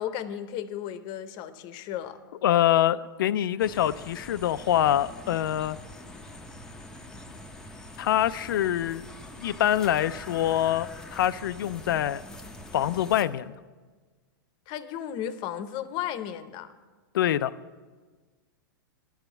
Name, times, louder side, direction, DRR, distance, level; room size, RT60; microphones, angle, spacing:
voice 1, 0.0-2.2 14.7-16.7, left 10 dB, 40° left, 12 dB, 0.8 m, -34 dB
voice 2, 2.4-5.8 8.0-9.1 9.4-12.2 12.7-13.5 17.1-17.5, left 11 dB, 75° left, 15 dB, 0.4 m, -25 dB
sound 1, 3.6-13.2, left 1 dB, 5° left, 0.7 m, -44 dB
10.5 x 7.0 x 8.2 m, 1.4 s
hypercardioid pair, 125°, 11 cm